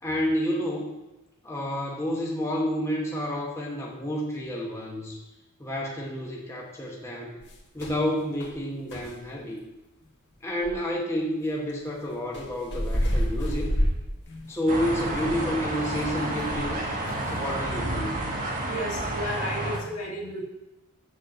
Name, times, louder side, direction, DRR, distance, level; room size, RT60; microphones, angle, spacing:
voice 1, 0.0-0.9 1.4-5.2 5.6-7.4 7.7-9.6 10.4-13.8 14.5-16.8 17.2-18.2, equal, 15° left, -3 dB, 1.1 m, -30 dB
sound 1, 7.4-8.0 8.4-8.6 8.9-9.2 10.6-10.8 12.3-16.8 17.1-17.4, equal, 50° left, 1.7 m, -29 dB
sound 2, 14.7-19.8, right 1 dB, 40° right, 1.3 m, -30 dB
voice 2, 18.6-20.4, equal, 70° left, -2 dB, 2.0 m, -34 dB
7.3 x 4.5 x 6.6 m, 0.98 s
head